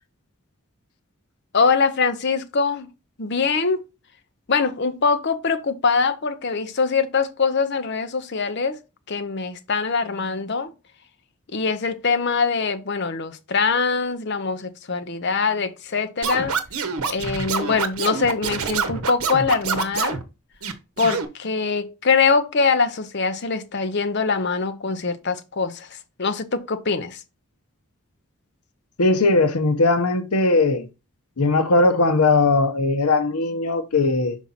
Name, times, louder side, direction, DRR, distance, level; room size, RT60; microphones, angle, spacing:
voice 1, 1.5-2.9 3.2-3.9 4.5-8.8 9.1-10.7 11.5-16.6 17.1-20.2 21.0-27.2, left 4 dB, 50° left, 0.7 m, -23 dB
Scratching (performance technique), 16.2-20.2 20.6-21.3, right 5 dB, 75° right, 0.9 m, -26 dB
voice 2, 29.0-30.9 31.4-34.4, left 3 dB, 85° left, 0.9 m, -19 dB
5.7 x 4.5 x 4.0 m
head